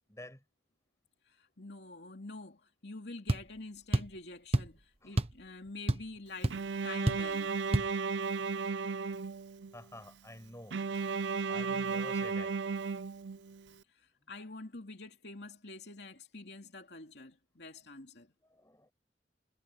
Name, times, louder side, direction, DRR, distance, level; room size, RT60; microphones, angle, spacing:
voice 1, 0.1-0.4 5.0-5.2 9.7-10.8 11.5-12.6 18.4-18.9, left 1 dB, 15° left, 6.6 m, -49 dB
voice 2, 1.2-6.6 6.8-7.5 13.9-18.3, left 2 dB, 65° left, 2.9 m, -47 dB
sound 1, 3.3-3.5 3.9-4.2 4.5-4.8 5.2-5.4 5.7-6.2 6.4-6.6 7.1-7.3 7.7-7.9, right 1 dB, 35° right, 1.0 m, -29 dB
Bowed string instrument, 6.5-9.7 10.7-13.6, right 5 dB, 80° right, 0.6 m, -34 dB
head